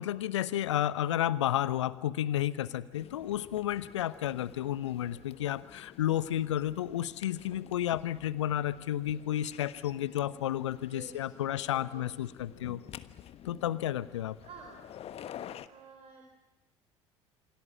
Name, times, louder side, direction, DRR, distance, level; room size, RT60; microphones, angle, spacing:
voice 1, 0.0-12.8 13.4-14.4, left 12 dB, 70° left, 16 dB, 1.0 m, -32 dB
sound 1, 2.9-15.7, left 10 dB, 40° left, 1.2 m, -50 dB
voice 2, 10.8-11.4 11.7-12.1 14.4-14.8 15.7-16.2, right 6 dB, 40° right, 4 dB, 4.5 m, -50 dB
28.0 x 25.5 x 7.3 m, 1.0 s
figure-of-eight pair, 65°, 16 cm